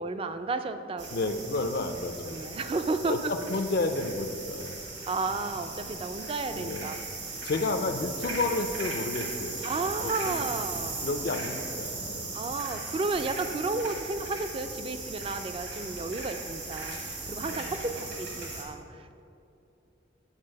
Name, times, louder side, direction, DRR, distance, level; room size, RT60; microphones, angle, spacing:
voice 1, 0.0-1.6 2.3-3.3 5.1-7.0 7.3-7.4 9.6-11.1 12.3-19.2, right 3 dB, 30° right, 9 dB, 0.3 m, -33 dB
sound 1, 1.0-18.6, right 3 dB, 70° right, 1.7 m, -38 dB
voice 2, 1.1-2.6 3.0-4.8 5.9-6.1 6.5-6.9 7.4-9.7 10.0-10.5 11.0-12.3 17.5-17.7, left 3 dB, 55° left, 7 dB, 0.4 m, -31 dB
8.8 x 4.0 x 6.4 m, 2.7 s
head